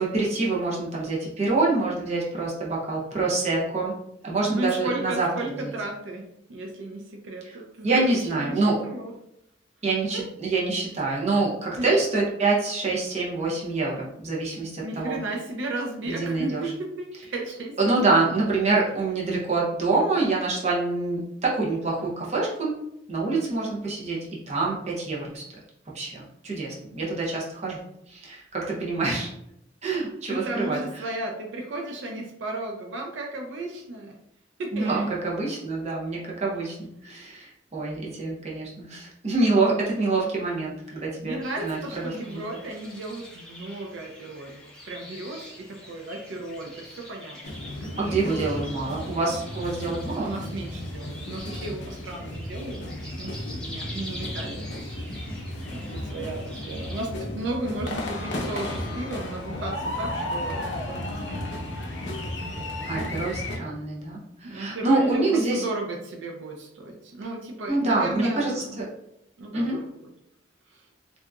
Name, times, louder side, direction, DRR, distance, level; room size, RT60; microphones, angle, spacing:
voice 1, 0.0-3.9 4.2-5.3 5.6-5.7 7.4-7.6 7.8-8.8 9.8-15.2 16.1-16.7 17.8-22.8 23.1-24.2 24.5-25.4 25.9-29.3 29.8-30.8 34.7-41.8 42.3-42.4 48.0-50.3 62.8-65.6 67.7-68.8 69.5-69.8, right 3 dB, 40° right, -4 dB, 0.7 m, -26 dB
voice 2, 4.5-9.1 10.1-10.2 11.8-11.9 14.8-18.2 30.3-34.2 34.6-35.1 41.2-48.9 49.8-55.4 55.7-61.4 64.4-68.9 69.4-69.9 70.7-70.8, right 2 dB, 85° right, 1 dB, 0.4 m, -34 dB
sound 1, 41.4-57.1, left 1 dB, 5° left, 0.6 m, -45 dB
sound 2, 47.4-63.6, left 1 dB, 70° left, 0.5 m, -34 dB
2.7 x 2.3 x 2.3 m, 0.77 s
head